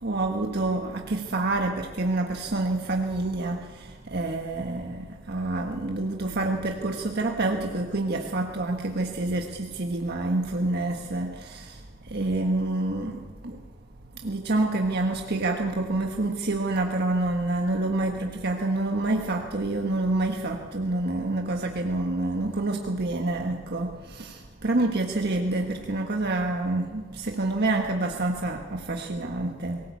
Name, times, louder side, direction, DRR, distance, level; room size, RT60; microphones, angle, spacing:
voice 1, 0.0-11.8 12.1-13.6 14.2-29.8, right 2 dB, 55° right, 2 dB, 1.5 m, -27 dB
23.0 x 18.0 x 8.4 m, 1.4 s
head